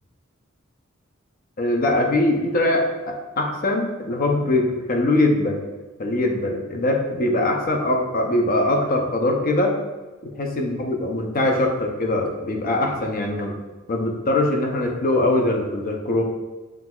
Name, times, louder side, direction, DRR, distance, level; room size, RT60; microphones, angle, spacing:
voice 1, 1.6-5.6 6.0-9.7 10.4-13.5 13.9-16.2, left 1 dB, 45° left, 2 dB, 0.6 m, -22 dB
5.9 x 3.2 x 2.3 m, 1.2 s
head